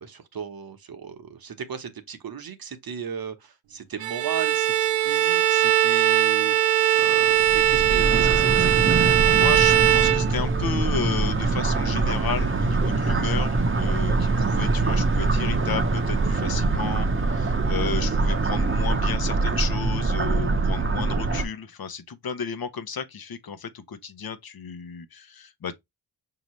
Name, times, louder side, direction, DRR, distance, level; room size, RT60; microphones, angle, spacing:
voice 1, 0.0-9.2, right 7 dB, 50° right, 1.0 m, -36 dB
Bowed string instrument, 4.0-10.8, right 13 dB, 85° right, 0.6 m, -20 dB
sound 1, 7.4-21.5, right 3 dB, 30° right, 0.8 m, -24 dB
voice 2, 9.3-25.7, left 6 dB, 55° left, 0.8 m, -33 dB
5.2 x 2.9 x 3.0 m
cardioid pair, 65°, 45 cm